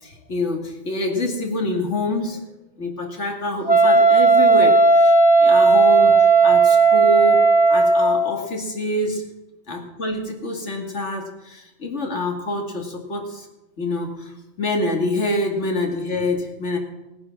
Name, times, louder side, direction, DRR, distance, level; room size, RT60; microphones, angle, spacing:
voice 1, 0.0-2.4 2.8-5.1 5.4-7.4 7.7-9.2 9.7-13.5 13.8-14.3 14.6-16.8, left 1 dB, 85° left, 2 dB, 2.6 m, -26 dB
Wind instrument woodwind instrument, 3.7-8.4, right 3 dB, 25° left, 0.9 m, -14 dB
19.0 x 9.4 x 6.0 m, 1.0 s
omnidirectional pair, 1.2 m